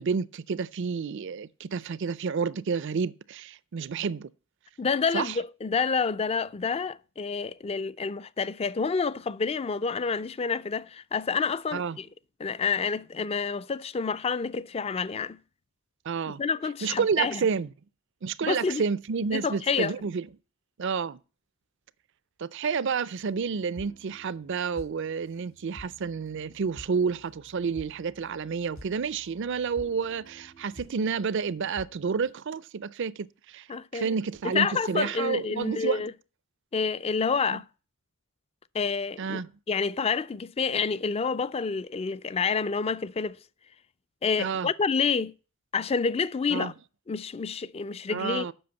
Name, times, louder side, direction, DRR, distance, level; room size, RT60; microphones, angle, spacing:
voice 1, 0.0-4.3 5.1-5.4 11.7-12.0 16.0-16.4 16.8-17.7 18.2-20.3 20.8-21.2 22.4-33.7 33.9-36.1 37.5-37.6 39.2-39.5 44.4-44.7 46.5-46.7 48.1-48.5, right 5 dB, 55° right, 0.4 m, -30 dB
voice 2, 4.8-12.1 12.4-15.4 16.3-17.4 18.4-18.8 19.3-19.9 33.7-34.1 34.4-36.1 36.7-37.6 38.7-39.4 39.7-43.4 44.2-45.3 45.7-46.7 47.1-48.5, left 5 dB, 25° left, 0.4 m, -28 dB
sound 1, 23.2-32.3, equal, 80° left, 4.7 m, -51 dB
7.8 x 6.1 x 7.0 m
head